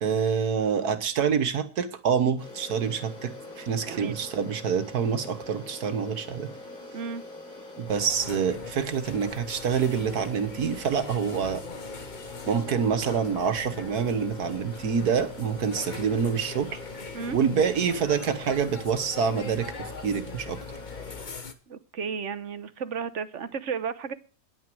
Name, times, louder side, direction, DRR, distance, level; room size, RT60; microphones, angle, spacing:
voice 1, 0.0-6.5 7.8-11.6 12.5-16.8 17.3-20.6, right 6 dB, 70° right, 11 dB, 1.9 m, -26 dB
sound 1, 2.4-21.2, left 2 dB, 80° left, 7.5 m, -43 dB
voice 2, 3.8-4.2 6.9-7.2 17.1-17.4 21.7-24.1, right 6 dB, 55° right, 14 dB, 1.1 m, -33 dB
sound 2, 7.9-21.5, left 5 dB, 35° left, 1.1 m, -41 dB
10.5 x 9.3 x 7.8 m, 0.39 s
omnidirectional pair, 1.7 m